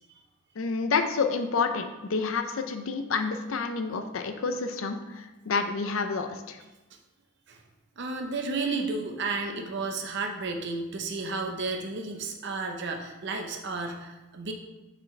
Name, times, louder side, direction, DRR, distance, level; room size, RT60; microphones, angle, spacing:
voice 1, 0.6-6.6, left 4 dB, 70° left, 7 dB, 0.5 m, -29 dB
voice 2, 8.0-14.5, right 3 dB, 55° right, 3 dB, 0.8 m, -32 dB
7.2 x 5.0 x 3.2 m, 1.1 s
head